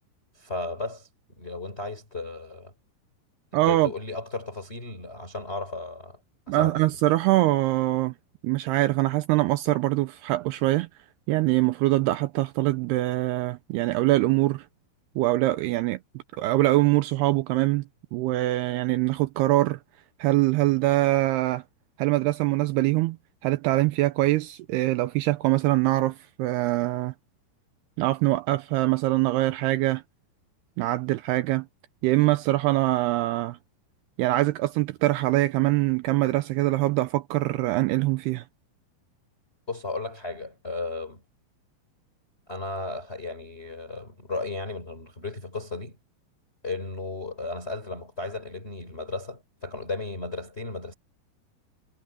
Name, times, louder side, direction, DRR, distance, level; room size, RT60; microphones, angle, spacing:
voice 1, 0.3-1.1 1.3-2.7 3.5-6.2 6.5-6.8 39.7-41.2 42.5-46.0 46.6-50.9, left 3 dB, 15° left, 4.8 m, -35 dB
voice 2, 3.5-3.9 6.5-8.1 8.4-10.9 11.3-14.7 15.2-16.0 16.4-17.8 18.1-19.8 20.2-21.6 22.0-23.2 23.4-27.1 28.0-30.0 30.8-31.7 32.0-33.6 34.2-38.4, right 18 dB, 80° right, 2.6 m, -23 dB
omnidirectional pair, 4.8 m